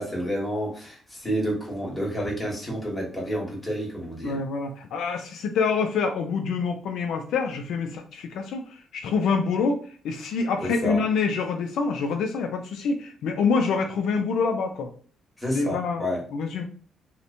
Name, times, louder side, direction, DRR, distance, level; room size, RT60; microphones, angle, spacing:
voice 1, 0.0-4.4 10.6-11.0 15.4-16.2, equal, 15° left, -3 dB, 1.3 m, -29 dB
voice 2, 4.2-14.9 15.5-16.0 16.3-16.6, left 5 dB, 80° left, 4 dB, 0.3 m, -26 dB
2.8 x 2.1 x 2.5 m, 0.41 s
cardioid pair, 90°, 0 cm